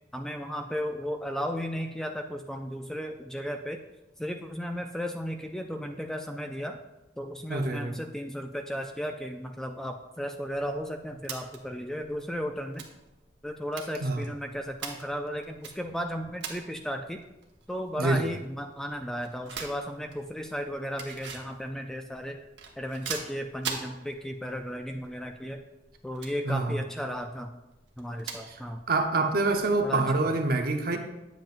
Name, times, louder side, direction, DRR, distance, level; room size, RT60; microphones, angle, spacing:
voice 1, 0.1-3.8 4.2-6.8 7.2-12.8 13.4-17.2 17.7-22.4 22.8-25.6 26.0-27.6 28.0-28.8 29.8-30.3, equal, 5° left, 5 dB, 0.3 m, -35 dB
voice 2, 7.5-7.9 14.0-14.2 18.0-18.3 26.4-26.8 28.4-28.6 28.9-31.0, right 3 dB, 55° right, 5 dB, 0.8 m, -26 dB
sound 1, 10.7-30.0, right 6 dB, 75° right, 1.0 m, -45 dB
9.1 x 7.5 x 2.5 m, 1.0 s
head